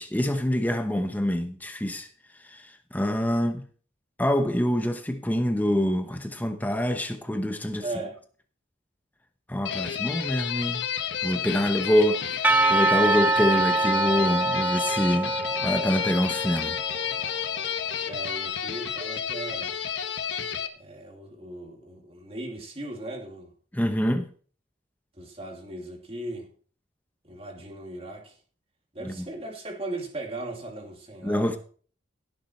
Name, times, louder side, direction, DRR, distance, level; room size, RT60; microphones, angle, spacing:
voice 1, 0.0-2.1 2.4-3.7 4.2-7.8 9.5-10.9 11.2-12.4 12.7-16.8 23.7-24.3 29.0-29.3 31.2-31.6, equal, 10° left, 0.9 m, -26 dB
voice 2, 7.8-8.2 18.1-19.8 20.7-23.5 25.2-26.5 27.2-28.4 28.9-31.6, right 2 dB, 30° right, 2.5 m, -37 dB
sound 1, 9.6-20.7, left 7 dB, 70° left, 1.3 m, -31 dB
Percussion / Church bell, 12.4-17.2, right 3 dB, 10° right, 0.4 m, -25 dB
16.5 x 7.4 x 4.4 m
head